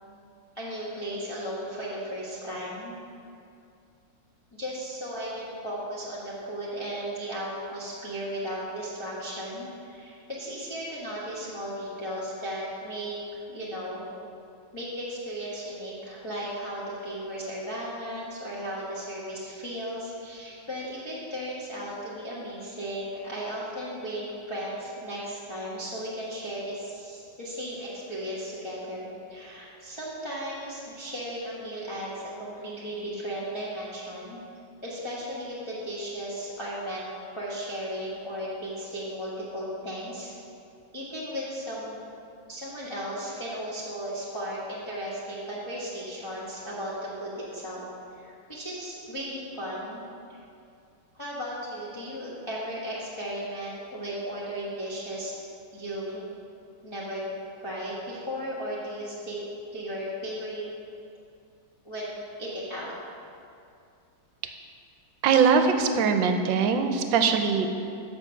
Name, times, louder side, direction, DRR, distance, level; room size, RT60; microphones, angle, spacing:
voice 1, 0.5-3.0 4.5-13.2 13.5-14.0 14.7-32.1 32.4-34.4 34.8-37.1 37.3-40.3 40.9-42.0 42.5-47.8 48.1-50.0 50.3-50.4 51.1-55.4 55.7-56.2 56.8-57.2 57.6-59.4 59.7-60.7 61.8-62.9, equal, 15° left, -8 dB, 1.1 m, -35 dB
voice 2, 65.2-67.7, right 6 dB, 75° right, 6 dB, 1.3 m, -22 dB
6.9 x 6.0 x 7.0 m, 2.5 s
omnidirectional pair, 2.2 m